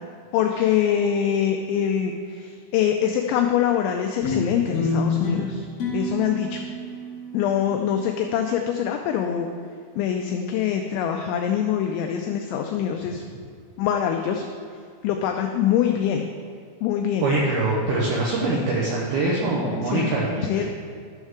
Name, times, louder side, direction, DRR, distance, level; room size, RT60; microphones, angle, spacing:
voice 1, 0.3-5.7 5.9-6.6 7.3-9.5 10.0-13.2 13.8-14.5 15.0-16.3 16.8-17.3 19.9-20.1 20.5-20.6, left 9 dB, 90° left, 4 dB, 2.6 m, -24 dB
sound 1, 4.2-8.9, left 3 dB, 55° left, 3.1 m, -29 dB
voice 2, 17.2-20.6, right 2 dB, 85° right, -4 dB, 2.2 m, -24 dB
13.0 x 6.3 x 3.6 m, 2.2 s
omnidirectional pair, 5.9 m